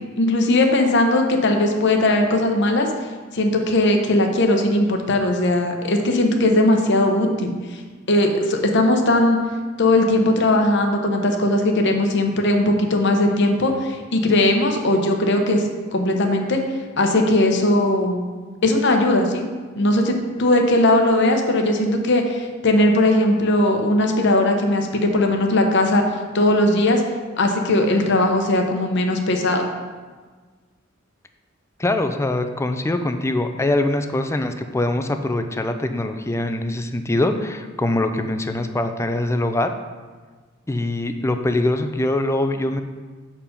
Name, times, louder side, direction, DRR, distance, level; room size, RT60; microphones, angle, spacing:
voice 1, 0.2-2.9 3.3-7.5 8.1-9.4 9.8-15.6 15.9-16.6 17.0-18.3 18.6-19.4 19.8-26.0 26.3-27.0 27.4-29.7, left 1 dB, 60° left, 3 dB, 0.9 m, -18 dB
voice 2, 31.8-39.7 40.7-42.8, left 1 dB, 15° left, 7 dB, 0.4 m, -23 dB
7.1 x 4.7 x 5.2 m, 1.4 s
head